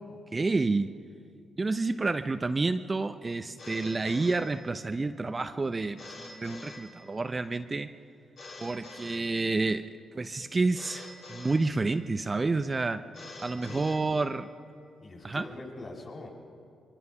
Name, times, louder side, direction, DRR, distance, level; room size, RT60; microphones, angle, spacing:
voice 1, 0.3-0.9 1.6-7.9 8.6-9.8 10.1-13.0 13.4-14.5 15.2-15.5, right 3 dB, 35° right, 9 dB, 0.8 m, -29 dB
Telephone, 3.6-5.1 6.0-7.5 8.4-9.9 10.7-12.2 13.1-14.6, left 2 dB, 60° left, 4.3 m, -47 dB
voice 2, 13.5-13.8 15.0-16.3, left 2 dB, 45° left, -3 dB, 7.8 m, -43 dB
24.5 x 23.5 x 5.8 m, 2.4 s
hypercardioid pair, 45°, 0 cm